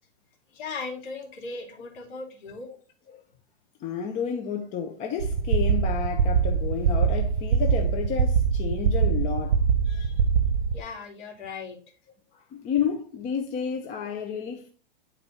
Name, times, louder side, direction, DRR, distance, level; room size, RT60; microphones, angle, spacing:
voice 1, 0.5-2.7 10.7-11.9, left 4 dB, 50° left, 2.8 m, -38 dB
voice 2, 3.8-9.6 9.8-10.1 12.3-14.7, left 7 dB, 25° left, 0.7 m, -31 dB
sound 1, 5.2-10.8, right 6 dB, 65° right, 1.0 m, -23 dB
9.6 x 4.1 x 4.2 m
hypercardioid pair, 150°, 31 cm